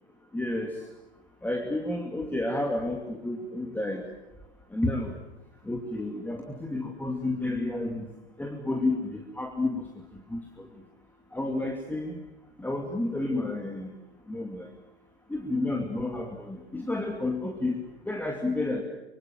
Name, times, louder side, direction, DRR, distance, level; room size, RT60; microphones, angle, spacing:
voice 1, 0.3-0.7 1.4-4.0 4.7-5.1 5.6-8.1 8.4-9.9 10.1-10.7 11.3-12.2 12.6-13.9 14.3-14.7 15.3-17.8 18.1-18.8, left 2 dB, 5° left, 2 dB, 2.6 m, -30 dB
25.0 x 24.5 x 7.4 m, 1.0 s
figure-of-eight pair, 95°, 34 cm